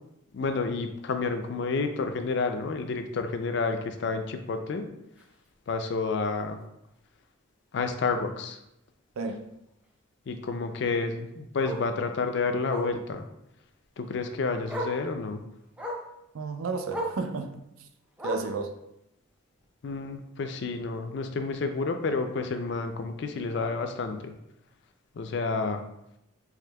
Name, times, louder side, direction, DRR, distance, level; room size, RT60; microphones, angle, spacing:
voice 1, 0.3-4.9 5.7-6.6 7.7-8.6 10.3-13.2 14.0-15.4 19.8-24.3 25.2-25.8, left 4 dB, 55° left, 0.4 m, -30 dB
Bark, 5.2-5.3 5.7-5.9 6.2-6.3 6.6-6.7 8.1-8.2 10.7-10.8 11.6-11.9 12.7-13.0 14.2-14.3 14.7-15.0 15.8-16.1 16.9-17.2 18.2-18.6 19.6-19.7, right 1 dB, 5° right, 0.4 m, -34 dB
voice 2, 9.2-9.5 16.3-17.9 18.2-18.8, right 4 dB, 90° right, 0.4 m, -33 dB
4.9 x 3.0 x 2.2 m
head